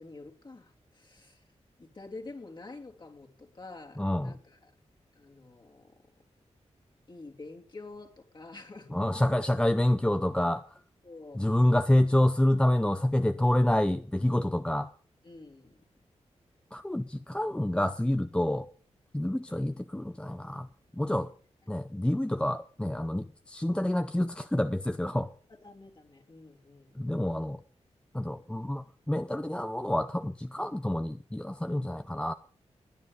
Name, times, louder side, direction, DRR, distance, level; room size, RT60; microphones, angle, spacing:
voice 1, 0.0-1.4 1.8-4.7 5.1-5.9 7.1-9.0 11.0-11.4 15.2-15.8 21.2-21.3 25.5-27.2, left 3 dB, 40° left, 3.3 m, -48 dB
voice 2, 4.0-4.3 8.9-10.6 11.3-14.9 16.7-18.7 19.1-20.7 20.9-21.3 21.7-25.3 27.0-27.6 28.1-32.3, left 1 dB, 10° left, 0.7 m, -27 dB
17.5 x 10.0 x 5.3 m
cardioid pair, 80°, 12 cm